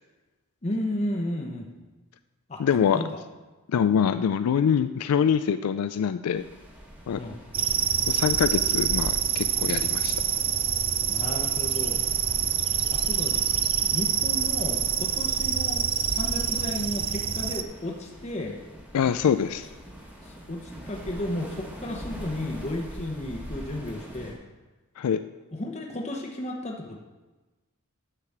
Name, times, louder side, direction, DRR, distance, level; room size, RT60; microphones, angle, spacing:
voice 1, 0.6-1.7 2.5-2.6 2.9-3.2 7.1-7.4 11.1-12.0 12.9-13.4 13.9-18.6 20.2-24.4 25.5-27.0, left 1 dB, 30° left, 1 dB, 0.9 m, -33 dB
voice 2, 2.6-3.0 3.7-6.4 7.1-7.2 8.1-10.2 18.9-19.7 25.0-25.2, left 7 dB, 85° left, 11 dB, 0.3 m, -24 dB
sound 1, 6.3-24.3, equal, 5° right, 1.4 m, -42 dB
sound 2, 7.5-17.6, right 9 dB, 25° right, 0.3 m, -26 dB
9.9 x 4.9 x 7.2 m, 1.2 s
head